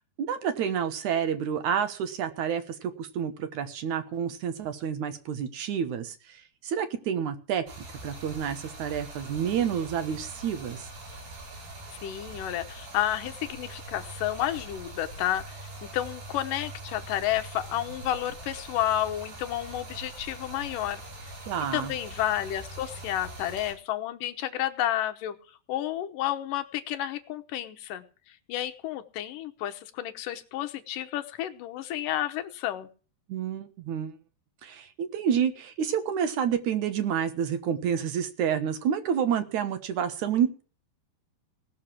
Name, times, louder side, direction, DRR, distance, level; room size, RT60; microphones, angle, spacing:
voice 1, 0.2-7.6 8.0-10.9 21.5-21.9 33.3-34.2 34.6-40.6, right 8 dB, 65° right, 10 dB, 2.1 m, -29 dB
Stream, 7.7-23.7, right 2 dB, 85° right, 8.1 m, -43 dB
voice 2, 12.0-21.4 21.7-25.4 25.7-32.9, left 12 dB, 70° left, 8 dB, 2.3 m, -31 dB
18.5 x 6.6 x 7.4 m, 0.39 s
omnidirectional pair, 4.7 m